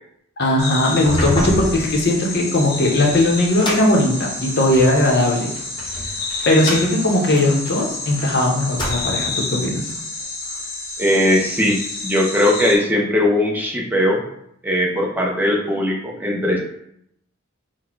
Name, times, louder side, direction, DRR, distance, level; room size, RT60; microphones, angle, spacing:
voice 1, 0.4-5.5 6.5-9.9, left 1 dB, 55° left, 0 dB, 0.8 m, -18 dB
sound 1, 0.6-12.8, left 3 dB, 85° left, 1.0 m, -29 dB
sound 2, 0.9-5.0 5.5-8.3 8.6-9.4, equal, 25° left, 1.0 m, -29 dB
voice 2, 11.0-14.2 14.6-16.6, left 1 dB, 10° right, -1 dB, 0.6 m, -19 dB
4.1 x 2.2 x 4.4 m, 0.75 s
head